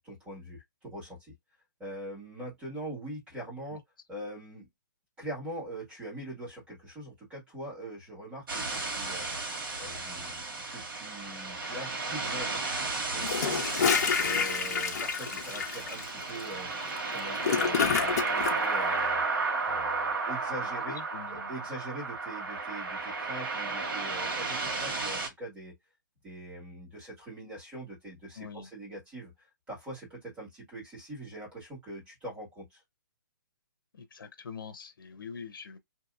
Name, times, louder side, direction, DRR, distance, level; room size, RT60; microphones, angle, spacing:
voice 1, 0.0-1.3 1.8-3.8 4.1-4.7 5.2-9.3 9.8-12.6 13.1-13.8 14.2-16.7 17.1-19.2 19.6-25.7 26.2-29.3 29.7-32.8, right 1 dB, 10° right, 1.6 m, -42 dB
sound 1, 8.5-25.3, right 3 dB, 85° right, 1.6 m, -33 dB
Gurgling / Toilet flush, 13.2-18.6, left 6 dB, 50° left, 0.7 m, -29 dB
voice 2, 20.9-21.5 28.4-28.7 33.9-35.8, left 6 dB, 90° left, 0.6 m, -44 dB
2.8 x 2.7 x 2.4 m
hypercardioid pair, 165°, 11 cm